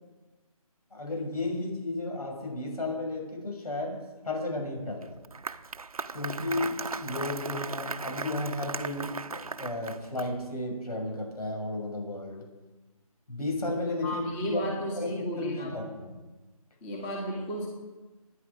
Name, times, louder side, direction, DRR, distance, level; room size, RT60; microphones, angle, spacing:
voice 1, 0.9-5.2 6.1-12.5 13.3-16.1, left 2 dB, 80° left, 1 dB, 6.7 m, -33 dB
Applause, 5.0-10.5, right 4 dB, 70° right, 0.9 m, -37 dB
voice 2, 14.0-15.9 16.8-17.7, equal, 10° left, -1 dB, 1.6 m, -34 dB
26.5 x 10.5 x 5.0 m, 1.2 s
figure-of-eight pair, 170°, 19 cm